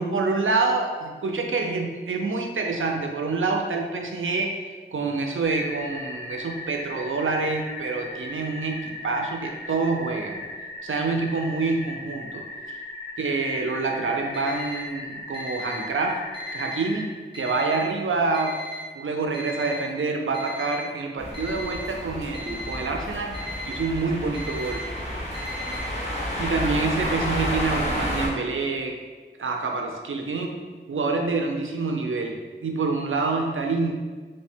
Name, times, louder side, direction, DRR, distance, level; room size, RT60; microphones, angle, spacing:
voice 1, 0.0-4.5 4.9-10.4 10.8-12.4 13.2-16.2 16.5-18.6 18.9-23.3 23.6-24.8 26.4-29.0 29.4-30.5 30.9-33.9, right 3 dB, 90° right, 2 dB, 0.5 m, -27 dB
sound 1, 5.4-17.0, left 2 dB, 85° left, 1.0 m, -38 dB
Alarm, 14.3-14.8 15.3-15.8 16.3-16.8 17.3-17.8 18.3-18.8 19.3-19.8 20.3-20.8 21.3-21.8 22.3-22.8 23.3-23.8 24.3-24.8 25.3-25.8, left 1 dB, 25° right, 0.8 m, -36 dB
sound 2, 21.2-28.3, equal, 35° left, 0.9 m, -30 dB
3.2 x 2.1 x 4.2 m, 1.4 s
wide cardioid pair, 60°, 20 cm